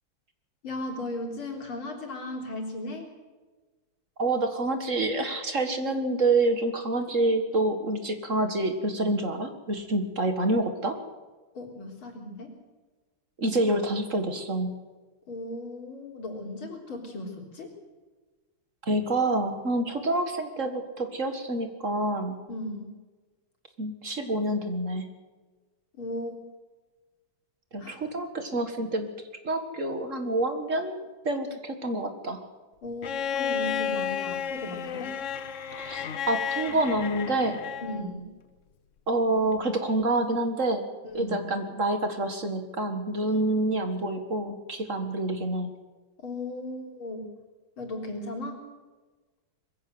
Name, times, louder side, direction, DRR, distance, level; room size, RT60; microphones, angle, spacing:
voice 1, 0.6-3.1 11.5-12.6 15.3-17.7 22.5-22.9 26.0-26.3 27.8-28.0 32.8-35.2 37.8-38.3 41.0-41.5 46.2-47.2 47.8-48.6, left 2 dB, 85° left, 2 dB, 4.4 m, -36 dB
voice 2, 4.2-11.0 13.4-14.7 18.8-22.4 23.8-25.1 27.7-29.1 29.4-32.4 35.8-37.6 39.1-40.8 41.1-45.7, right 2 dB, 40° right, 7 dB, 2.0 m, -27 dB
Bowed string instrument, 33.0-38.1 39.5-39.6, left 8 dB, 50° left, 0.9 m, -32 dB
21.5 x 15.5 x 7.9 m, 1.3 s
omnidirectional pair, 2.2 m